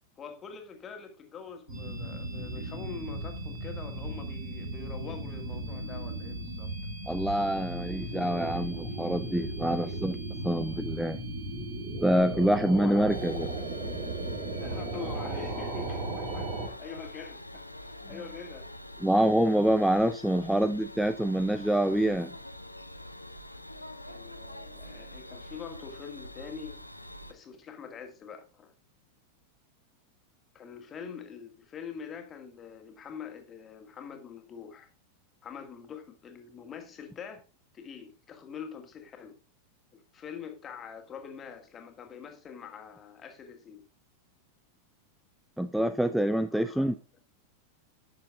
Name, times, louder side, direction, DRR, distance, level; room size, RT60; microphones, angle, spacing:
voice 1, 0.2-6.7 12.3-13.2 14.6-18.7 24.1-26.8 27.3-28.7 30.5-34.9 35.4-37.4 37.7-39.3 39.9-43.8 46.5-46.9, left 6 dB, 25° left, 2.0 m, -44 dB
sound 1, 1.7-16.7, right 2 dB, 50° right, 3.7 m, -36 dB
voice 2, 7.1-10.2 10.4-11.2 12.0-13.5 19.0-22.3 45.6-46.9, right 1 dB, ahead, 0.4 m, -26 dB
sound 2, 13.1-27.3, left 1 dB, 85° left, 0.7 m, -45 dB
10.5 x 6.7 x 3.5 m
figure-of-eight pair, 90°, 0 cm